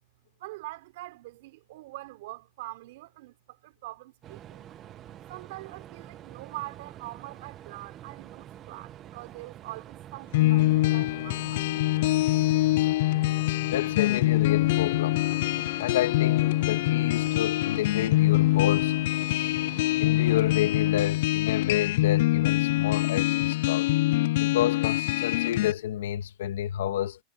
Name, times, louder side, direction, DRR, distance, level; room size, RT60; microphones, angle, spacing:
voice 1, 0.4-4.6 5.3-12.1, right 19 dB, 65° right, 4.7 m, -43 dB
sound 1, 4.2-21.1, right 11 dB, 30° right, 1.3 m, -47 dB
sound 2, 10.3-25.7, left 18 dB, 65° left, 0.3 m, -24 dB
voice 2, 13.7-15.3 15.8-18.9 20.0-23.9 24.4-27.2, left 12 dB, 90° left, 1.9 m, -30 dB
supercardioid pair, 150°, 0 cm